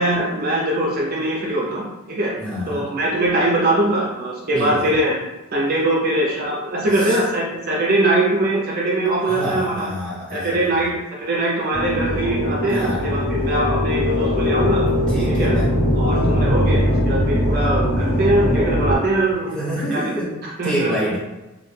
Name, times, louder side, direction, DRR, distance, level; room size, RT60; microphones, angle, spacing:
voice 1, 0.0-2.3 2.7-5.2 5.5-9.9 10.3-10.9 11.2-14.9 15.3-15.5 15.9-19.5 19.9-20.0 20.4-20.9, right 1 dB, 45° right, -3 dB, 0.4 m, -21 dB
voice 2, 2.4-2.9 4.5-4.9 6.9-7.2 9.2-10.8 12.7-13.1 15.1-15.7 19.5-20.4 20.6-21.2, equal, 5° left, -9 dB, 0.8 m, -27 dB
sound 1, 11.7-19.0, equal, 75° left, 1.3 m, -20 dB
2.4 x 2.1 x 3.1 m, 1.0 s
head